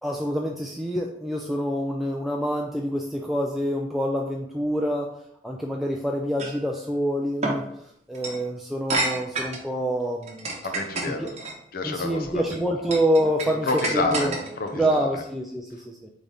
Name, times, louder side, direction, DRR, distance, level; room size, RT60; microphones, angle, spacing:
voice 1, 0.0-5.1 5.4-7.6 8.1-10.5 11.1-11.3 11.8-14.3 14.7-16.1, equal, ahead, -1 dB, 0.3 m, -26 dB
sound 1, 6.4-6.6 7.4-7.6 8.1-8.4 8.9-9.7 10.2-11.5 12.2-12.6 12.9-14.7, right 2 dB, 40° right, 0.9 m, -28 dB
voice 2, 10.6-11.3 11.7-12.4 13.5-15.2, left 3 dB, 55° left, 5 dB, 0.7 m, -29 dB
3.9 x 3.7 x 3.4 m, 0.74 s
head